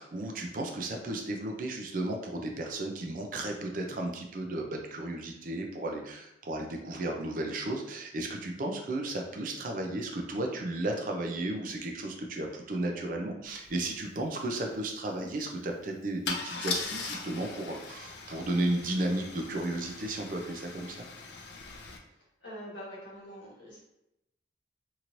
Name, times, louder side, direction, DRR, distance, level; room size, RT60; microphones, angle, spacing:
voice 1, 0.0-21.0, right 1 dB, 45° right, 2 dB, 0.4 m, -34 dB
Car / Engine starting / Idling, 13.6-13.7 14.0-14.3 16.3-22.0, left 4 dB, 65° left, 0.4 m, -39 dB
voice 2, 22.4-23.8, equal, 90° left, -5 dB, 1.2 m, -44 dB
3.0 x 2.8 x 2.5 m, 0.85 s
head